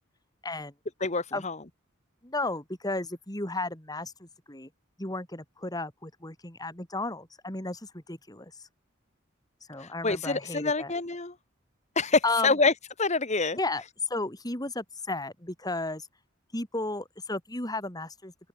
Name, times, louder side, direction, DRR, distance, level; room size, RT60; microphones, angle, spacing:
voice 1, 1.0-1.6 9.8-11.3 11.9-13.6, left 3 dB, 35° left, 1.7 m, -26 dB
voice 2, 2.2-4.7 5.0-8.5 9.7-10.9 12.2-12.6 13.6-16.1 16.5-18.5, left 2 dB, 20° left, 4.2 m, -33 dB
open air
head